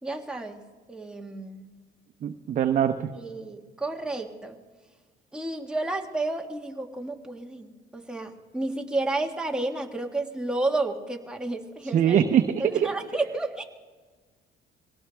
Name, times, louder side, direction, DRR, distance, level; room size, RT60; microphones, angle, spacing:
voice 1, 0.0-1.7 3.1-4.6 5.3-12.3 12.6-13.6, right 2 dB, 5° right, 1 dB, 1.6 m, -31 dB
voice 2, 2.2-3.1 11.9-12.9, right 9 dB, 50° right, 6 dB, 0.9 m, -23 dB
23.5 x 17.5 x 3.5 m, 1.4 s
cardioid pair, 110°, 17 cm